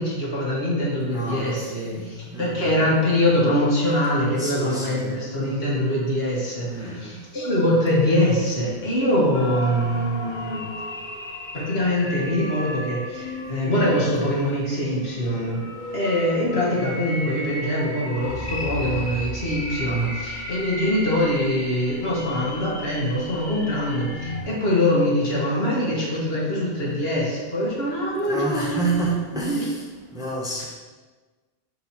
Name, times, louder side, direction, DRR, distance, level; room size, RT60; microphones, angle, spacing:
voice 1, 0.0-10.6 11.5-15.6 15.9-28.8 29.3-29.7, left 1 dB, 65° left, -5 dB, 2.0 m, -23 dB
voice 2, 1.1-2.7 4.4-5.2 6.7-7.2 19.9-20.1 28.3-29.8 30.1-30.6, right 2 dB, 5° right, -4 dB, 1.1 m, -29 dB
sound 1, 9.3-24.4, left 1 dB, 50° left, 1.1 m, -34 dB
6.5 x 4.7 x 4.3 m, 1.3 s
omnidirectional pair, 1.1 m